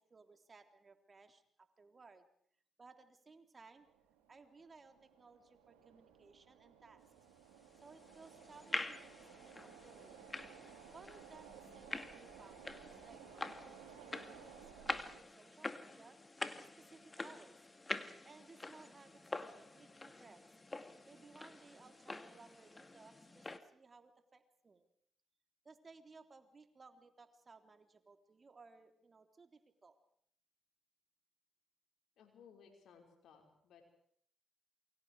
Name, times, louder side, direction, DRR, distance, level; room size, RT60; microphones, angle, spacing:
voice 1, 0.0-2.3 2.8-3.9 4.3-7.1 7.7-10.2 10.9-16.2 16.6-17.7 18.2-20.5 21.0-24.9 25.6-30.0, right 4 dB, 40° right, 7 dB, 3.5 m, -61 dB
sound 1, 3.7-15.2, right 8 dB, 90° right, 3.9 m, -58 dB
sound 2, 7.6-23.6, left 2 dB, 25° left, 2.3 m, -46 dB
voice 2, 32.2-33.8, left 6 dB, 70° left, 3 dB, 5.7 m, -61 dB
28.5 x 23.5 x 5.0 m, 0.64 s
hypercardioid pair, 45°, 0 cm